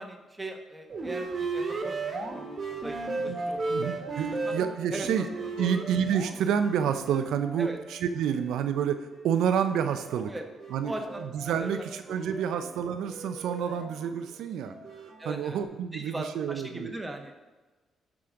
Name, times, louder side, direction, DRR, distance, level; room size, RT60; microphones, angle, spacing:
voice 1, 0.0-2.0 2.3-3.7 4.2-4.6 4.9-5.2 5.6-5.8 7.6-7.8 10.3-10.4 10.8-12.2 15.2-15.6 15.9-17.3, right 2 dB, 15° right, 3 dB, 1.4 m, -39 dB
sound 1, 0.9-8.6 9.0-15.6, right 3 dB, 45° right, 1.6 m, -37 dB
voice 2, 3.7-5.2 5.6-9.0 9.2-10.3 10.7-10.9 11.5-14.7 15.3-16.9, right 8 dB, 85° right, 9 dB, 0.6 m, -28 dB
12.0 x 5.0 x 3.8 m, 1.2 s
cardioid pair, 75°, 0 cm